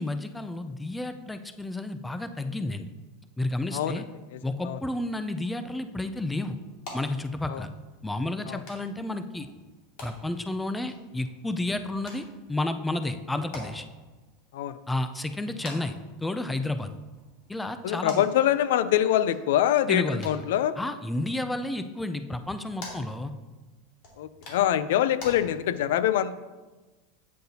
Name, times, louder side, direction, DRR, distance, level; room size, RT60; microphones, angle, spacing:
voice 1, 0.0-2.9 3.4-4.0 4.4-6.6 6.9-7.7 8.0-9.5 10.0-13.9 14.9-15.9 16.2-16.9 17.5-18.2 19.9-20.3 20.8-23.3, left 2 dB, 5° left, 10 dB, 0.3 m, -31 dB
voice 2, 3.7-4.0 4.6-4.8 7.5-7.6 8.5-8.6 14.5-14.8 17.8-20.8 24.2-26.3, left 11 dB, 80° left, 15 dB, 0.4 m, -24 dB
sound 1, 5.5-25.3, left 2 dB, 55° left, 2.2 m, -49 dB
8.4 x 7.8 x 2.8 m, 1.2 s
supercardioid pair, 150°, 0 cm